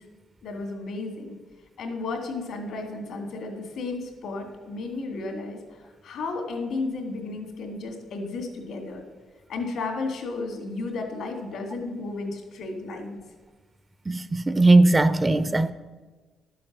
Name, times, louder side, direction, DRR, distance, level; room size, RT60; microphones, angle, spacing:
voice 1, 0.4-1.4 1.8-9.0 9.5-13.2, left 3 dB, 75° left, 2.6 m, -33 dB
voice 2, 14.1-15.7, right 2 dB, 20° right, 0.5 m, -19 dB
12.0 x 7.7 x 6.2 m
cardioid pair, 90°, 0 cm